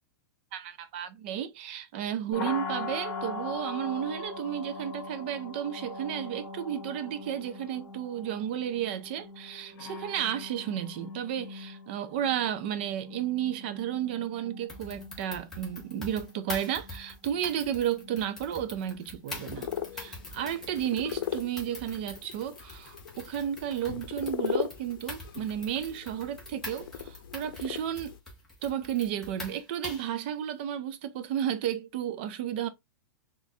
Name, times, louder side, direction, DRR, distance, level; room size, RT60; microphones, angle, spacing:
voice 1, 0.5-28.1 28.6-32.7, right 10 dB, 30° right, 0.4 m, -33 dB
sound 1, 2.3-22.1, left 3 dB, 40° left, 1.6 m, -43 dB
sound 2, 14.7-30.2, left 2 dB, 5° left, 0.8 m, -44 dB
sound 3, 19.4-28.2, left 9 dB, 90° left, 0.6 m, -38 dB
4.0 x 2.4 x 2.6 m
supercardioid pair, 175°, 11 cm